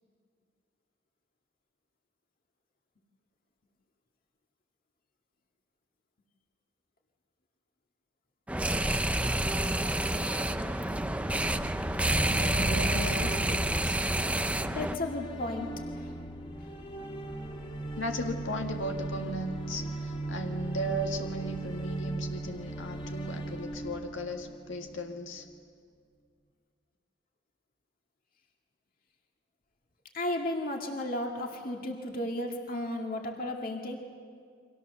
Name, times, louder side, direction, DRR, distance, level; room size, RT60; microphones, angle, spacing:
sound 1, 8.5-15.0, right 1 dB, 5° right, 0.6 m, -28 dB
sound 2, 9.1-25.2, right 2 dB, 30° left, 1.7 m, -39 dB
voice 1, 12.3-13.4 13.8-14.0 18.0-25.4, equal, 85° left, 3 dB, 1.8 m, -36 dB
voice 2, 14.7-15.7 30.1-34.0, left 1 dB, 50° left, 1 dB, 2.1 m, -34 dB
30.0 x 24.5 x 6.8 m, 2.1 s
head